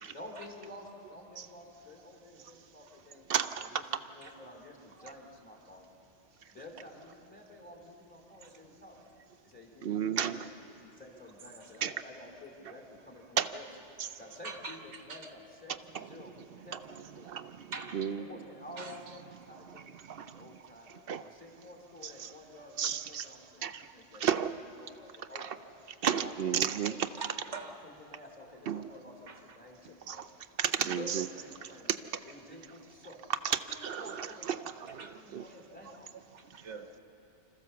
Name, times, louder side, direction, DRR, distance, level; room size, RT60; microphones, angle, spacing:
voice 1, 0.1-3.3 3.6-5.8 6.5-9.0 9.4-10.5 10.8-13.6 14.0-17.3 18.2-20.9 21.2-24.4 24.8-25.8 26.2-27.0 27.8-30.3 30.8-32.0 32.2-33.2 33.7-34.5 34.8-36.1, left 1 dB, 5° left, 0 dB, 3.1 m, -51 dB
voice 2, 3.3-3.7 9.8-10.4 11.8-11.9 13.4-13.5 15.9-16.1 17.2-17.7 17.9-18.2 19.7-19.8 20.1-20.4 21.1-21.2 22.0-22.3 22.8-23.3 23.6-23.8 24.2-24.6 25.3-25.5 26.0-27.1 28.7-28.8 30.1-30.3 30.6-31.3 31.9-32.0 33.4-35.1 35.3-35.4, right 8 dB, 60° right, 11 dB, 0.8 m, -32 dB
voice 3, 14.4-14.8 15.1-15.3 17.7-18.0 18.8-19.0 27.2-27.7 29.3-29.6 35.0-35.1 36.3-36.9, right 4 dB, 85° right, 4 dB, 1.6 m, -43 dB
26.5 x 14.5 x 7.0 m, 2.9 s
omnidirectional pair, 1.2 m